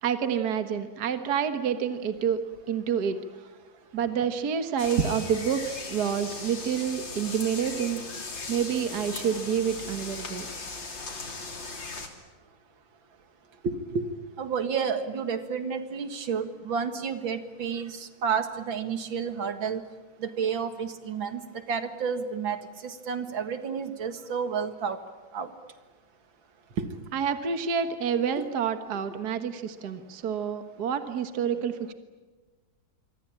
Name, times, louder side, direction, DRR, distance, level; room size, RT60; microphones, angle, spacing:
voice 1, 0.0-3.2 3.9-8.0 8.5-10.5 27.1-31.9, right 7 dB, 55° right, 8 dB, 1.9 m, -28 dB
sound 1, 4.8-12.1, left 3 dB, 70° left, 3.9 m, -38 dB
voice 2, 13.6-14.1 14.4-19.8 20.2-21.4 21.7-25.0 25.3-25.5 26.8-26.9, right 6 dB, 75° right, 9 dB, 2.5 m, -30 dB
26.5 x 24.0 x 8.8 m, 1.3 s
omnidirectional pair, 2.1 m